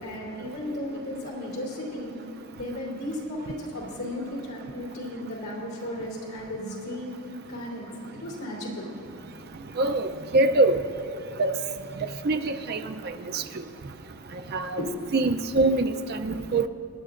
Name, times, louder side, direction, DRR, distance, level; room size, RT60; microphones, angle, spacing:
voice 1, 0.0-2.2 2.5-7.2 7.5-7.9 8.2-8.9 14.8-14.9, left 1 dB, 85° left, -4 dB, 3.3 m, -34 dB
voice 2, 9.8-10.8 11.4-11.5 12.0-13.4 14.5-14.8 15.1-16.7, right 2 dB, 45° right, 7 dB, 0.5 m, -24 dB
24.5 x 10.5 x 2.5 m, 2.9 s
head